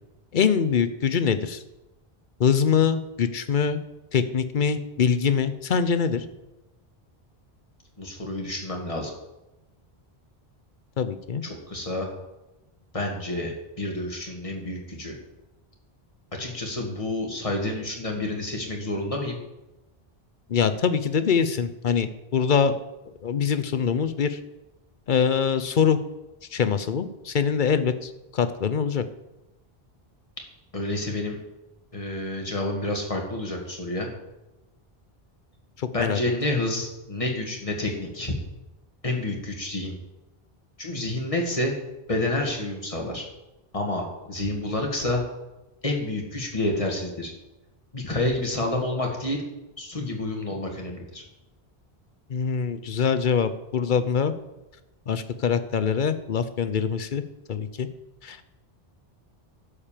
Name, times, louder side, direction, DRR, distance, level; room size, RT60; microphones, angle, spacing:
voice 1, 0.3-1.6 2.4-3.8 4.1-6.2 11.0-11.4 20.5-22.7 23.2-24.4 25.1-26.0 26.5-29.0 35.8-36.2 52.3-54.3 55.1-57.2 57.5-57.9 58.2-58.4, left 6 dB, 55° left, 12 dB, 0.8 m, -24 dB
voice 2, 8.0-9.1 11.4-12.1 12.9-15.2 16.4-19.4 30.7-31.4 31.9-34.1 35.9-38.3 39.0-39.9 40.8-41.8 42.1-43.3 43.7-45.2 45.8-47.3 47.9-49.4 49.8-51.2, left 1 dB, 35° left, 1 dB, 2.1 m, -29 dB
11.5 x 5.1 x 7.4 m, 0.99 s
omnidirectional pair, 1.0 m